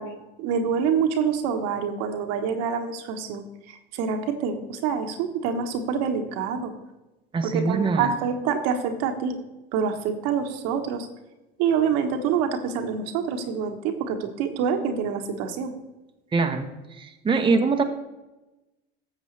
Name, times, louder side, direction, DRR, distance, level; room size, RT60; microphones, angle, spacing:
voice 1, 0.0-6.7 7.4-9.4 9.7-11.1 11.6-15.7, right 6 dB, 60° right, 5 dB, 1.2 m, -26 dB
voice 2, 7.3-8.1 16.3-16.7 17.0-17.8, right 4 dB, 15° right, 4 dB, 0.9 m, -23 dB
13.5 x 7.2 x 3.3 m, 1.0 s
hypercardioid pair, 80°, 29 cm